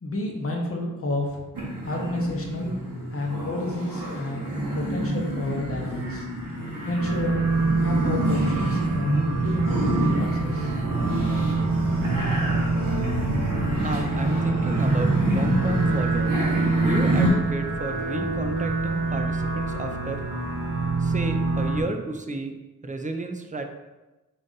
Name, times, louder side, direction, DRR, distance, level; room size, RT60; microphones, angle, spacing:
voice 1, 0.0-1.4 1.8-2.7 3.1-6.3 6.8-7.5 7.8-10.7, left 2 dB, 45° left, 0 dB, 0.8 m, -30 dB
sound 1, 1.5-17.3, right 1 dB, 90° right, 1.0 m, -28 dB
sound 2, 7.0-21.8, right 3 dB, 70° right, 0.7 m, -26 dB
voice 2, 13.8-16.3 16.8-20.3 21.0-22.5 22.8-23.6, right 2 dB, 25° right, 5 dB, 0.4 m, -32 dB
4.0 x 2.5 x 3.8 m, 1.1 s
wide cardioid pair, 90°, 33 cm